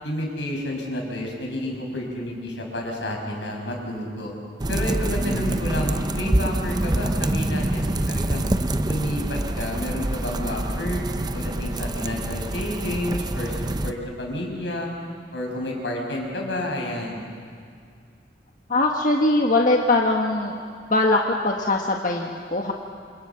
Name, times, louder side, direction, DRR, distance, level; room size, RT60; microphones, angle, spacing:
voice 1, 0.0-4.3 4.7-8.5 8.8-11.0 11.3-14.9 15.3-17.3, left 1 dB, 80° left, 0 dB, 6.2 m, -30 dB
sound 1, 4.6-13.9, right 1 dB, 20° right, 0.7 m, -26 dB
voice 2, 18.7-20.5 20.9-22.7, left 2 dB, 45° left, 0 dB, 1.5 m, -21 dB
27.5 x 27.5 x 5.9 m, 2.2 s
head